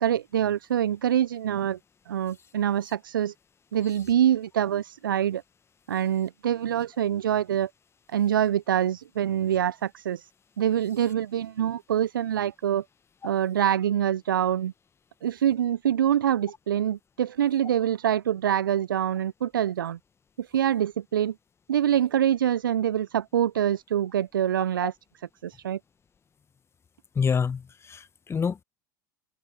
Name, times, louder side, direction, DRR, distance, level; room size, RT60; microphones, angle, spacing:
voice 1, 0.0-1.8 2.1-3.3 3.7-5.4 5.9-7.7 8.1-10.3 10.6-12.8 13.2-14.7 15.2-20.0 20.4-21.3 21.7-24.9 25.4-25.8, right 10 dB, 75° right, 0.6 m, -25 dB
voice 2, 27.1-28.6, left 6 dB, 25° left, 1.4 m, -27 dB
figure-of-eight pair, 75°, 11 cm